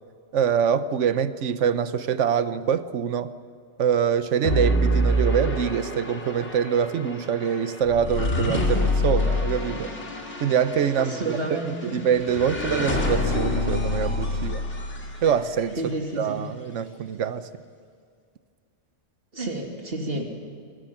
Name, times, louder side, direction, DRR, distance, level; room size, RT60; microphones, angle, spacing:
voice 1, 0.3-3.3 3.8-9.9 10.4-14.6 15.2-15.8 16.2-17.5, right 8 dB, 80° right, 1.2 m, -24 dB
sound 1, 4.4-15.7, left 1 dB, 70° left, 3.0 m, -27 dB
voice 2, 11.0-12.1 14.3-14.5 15.8-16.4 19.3-20.4, right 1 dB, 50° right, 3.0 m, -31 dB
26.0 x 23.5 x 6.0 m
omnidirectional pair, 1.2 m